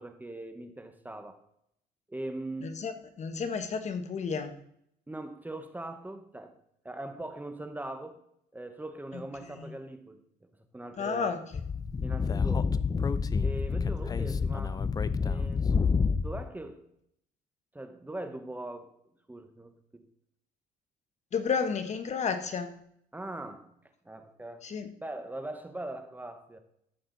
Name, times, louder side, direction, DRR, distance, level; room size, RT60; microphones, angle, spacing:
voice 1, 0.0-1.4 2.1-2.8 5.1-6.5 6.8-8.2 8.5-10.2 10.7-11.3 12.0-12.7 13.4-14.8 15.2-15.7 16.2-16.8 17.7-18.9 19.3-20.0 23.1-23.7 24.0-24.6 25.0-26.6, right 1 dB, 10° right, 1.1 m, -41 dB
voice 2, 2.6-4.5 9.1-9.2 9.5-9.7 11.0-11.4 14.1-14.2 21.3-22.8 24.6-24.9, left 6 dB, 40° left, 1.3 m, -32 dB
Speech / Wind, 11.5-16.4, left 5 dB, 20° left, 0.5 m, -28 dB
13.0 x 7.8 x 4.0 m
cardioid pair, 110°, 17 cm